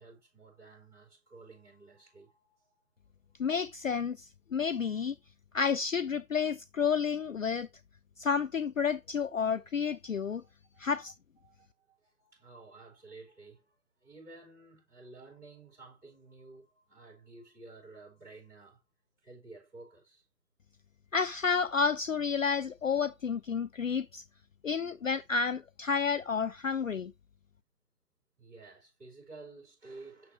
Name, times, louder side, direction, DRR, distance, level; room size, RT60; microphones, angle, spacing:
voice 1, 0.0-2.8 10.4-10.5 10.8-11.1 11.4-18.8 19.2-20.2 28.4-30.3, right 3 dB, 5° right, 4.1 m, -53 dB
voice 2, 3.4-5.1 5.5-7.7 8.2-10.4 10.8-11.1 21.1-24.2 24.6-27.1, left 6 dB, 55° left, 0.5 m, -30 dB
7.4 x 6.5 x 3.0 m
figure-of-eight pair, 155°, 48 cm